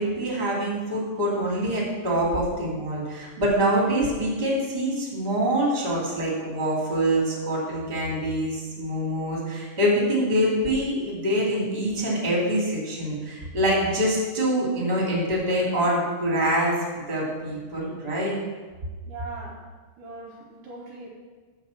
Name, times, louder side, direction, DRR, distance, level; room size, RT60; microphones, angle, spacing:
voice 1, 0.0-18.4, right 1 dB, 15° right, -4 dB, 2.5 m, -25 dB
voice 2, 19.1-19.6 20.0-21.1, right 3 dB, 70° right, -3 dB, 2.5 m, -40 dB
9.8 x 5.0 x 7.1 m, 1.4 s
omnidirectional pair, 4.2 m